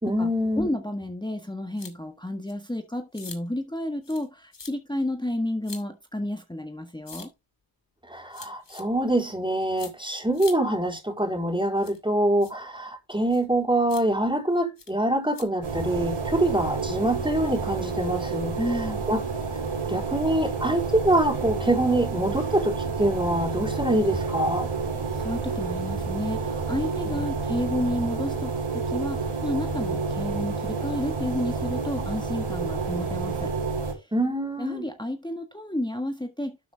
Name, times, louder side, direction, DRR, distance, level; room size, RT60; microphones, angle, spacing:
voice 1, 0.0-0.7 8.1-18.6 19.1-19.2 19.9-24.7 27.1-27.2 34.1-34.9, right 1 dB, 10° right, 4.2 m, -25 dB
voice 2, 0.6-7.3 18.6-19.0 25.1-33.5 33.9-34.1 34.6-36.7, left 1 dB, 10° left, 1.5 m, -31 dB
sound 1, 1.8-1.9 2.5-2.6 3.1-3.4 4.0-4.3 4.5-4.7 5.6-5.8 7.1-7.3 8.3-8.8 9.8-9.9 10.3-10.6 11.8-12.0 12.4-12.5 13.3-13.4 13.9-14.0 14.8-14.9 15.3-15.4, left 5 dB, 60° left, 2.6 m, -42 dB
sound 2, 15.6-33.9, right 4 dB, 75° right, 5.5 m, -29 dB
12.0 x 6.4 x 3.5 m
wide cardioid pair, 70°, 49 cm